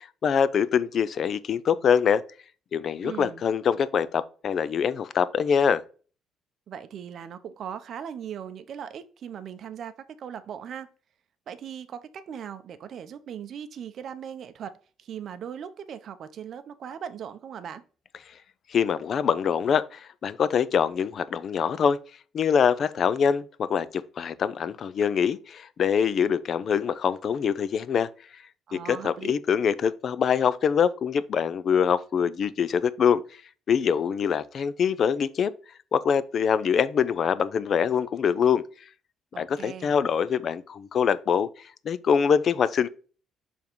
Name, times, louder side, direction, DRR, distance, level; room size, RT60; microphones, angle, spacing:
voice 1, 0.0-2.2 2.7-5.8 18.7-22.0 22.3-28.1 28.7-33.2 33.7-35.5 35.9-38.6 39.4-41.5 41.8-42.9, left 7 dB, 45° left, 0.4 m, -24 dB
voice 2, 3.0-3.4 6.7-9.9 10.2-10.9 11.5-14.7 15.0-17.8 28.7-29.3 39.3-40.0, right 8 dB, 50° right, 0.7 m, -39 dB
7.0 x 3.6 x 4.5 m
cardioid pair, 140°, 0 cm